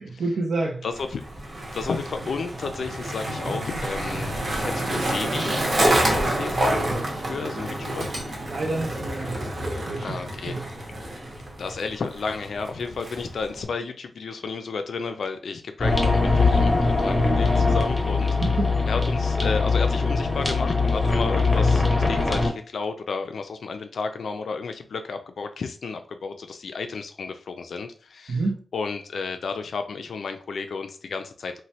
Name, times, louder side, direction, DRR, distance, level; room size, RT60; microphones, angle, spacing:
voice 1, 0.0-0.8 8.5-9.4 9.7-10.2 10.5-10.6 18.4-18.8 28.3-28.6, right 2 dB, 90° right, 0.5 m, -28 dB
voice 2, 0.8-1.2 1.7-4.3 4.6-7.0 7.3-8.1 10.0-10.6 11.6-18.4 18.9-28.4 28.7-31.5, left 4 dB, 85° left, 0.3 m, -32 dB
Skateboard, 0.9-13.6, right 1 dB, 45° right, 0.7 m, -28 dB
sound 1, 15.8-22.5, left 3 dB, 25° left, 0.7 m, -21 dB
3.1 x 2.2 x 2.7 m
wide cardioid pair, 140°, 0 cm